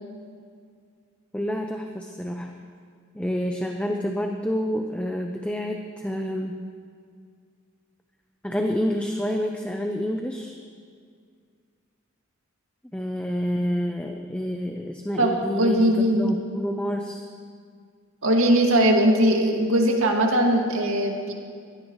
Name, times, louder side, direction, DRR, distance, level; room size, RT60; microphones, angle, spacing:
voice 1, 1.3-2.5 3.1-6.6 8.4-10.5 12.9-17.3, equal, 5° left, 3 dB, 0.6 m, -28 dB
voice 2, 15.2-16.3 18.2-21.3, right 1 dB, 75° right, 1 dB, 2.1 m, -20 dB
23.0 x 16.5 x 3.2 m, 2.1 s
head